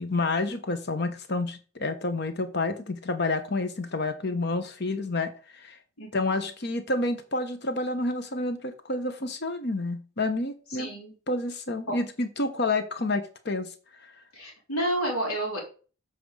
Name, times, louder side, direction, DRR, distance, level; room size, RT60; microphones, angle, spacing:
voice 1, 0.0-5.8 6.1-10.9 11.3-13.7 14.0-14.1, left 2 dB, 50° left, 1.0 m, -29 dB
voice 2, 6.0-6.5 10.7-11.1 11.9-12.0 14.3-15.6, right 1 dB, 90° left, 3.7 m, -30 dB
7.6 x 5.1 x 4.9 m
head